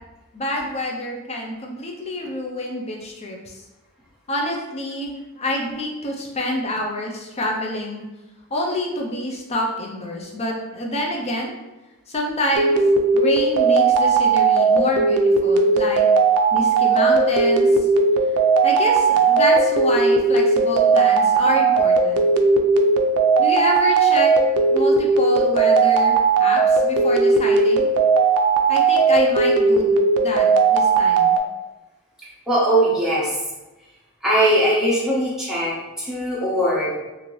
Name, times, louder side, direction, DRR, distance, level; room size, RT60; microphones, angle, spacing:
voice 1, 0.3-3.6 4.3-8.0 8.5-11.5 12.1-12.8 13.1-16.1 16.5-17.9 18.6-22.2 23.4-24.3 24.7-27.9 28.7-31.4, left 1 dB, 30° left, 0 dB, 0.5 m, -27 dB
sound 1, 12.5-31.4, right 4 dB, 80° right, 0.4 m, -17 dB
voice 2, 32.5-33.3 34.2-36.9, right 1 dB, 5° right, -7 dB, 0.8 m, -20 dB
2.8 x 2.6 x 3.0 m, 1.1 s
head